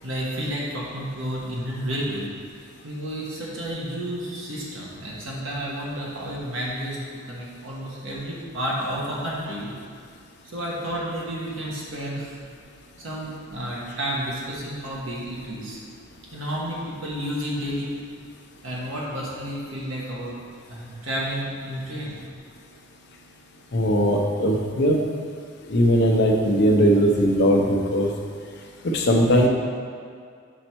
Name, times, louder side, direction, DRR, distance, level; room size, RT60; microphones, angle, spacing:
voice 1, 0.0-2.3 2.8-7.0 7.3-9.7 10.4-12.3 13.0-15.8 16.3-17.9 18.6-20.4 20.7-22.2, equal, 75° right, -5 dB, 1.4 m, -31 dB
voice 2, 23.7-25.0 25.7-28.1 28.9-29.5, equal, 55° left, 1 dB, 0.7 m, -19 dB
5.5 x 4.2 x 4.5 m, 2.2 s
head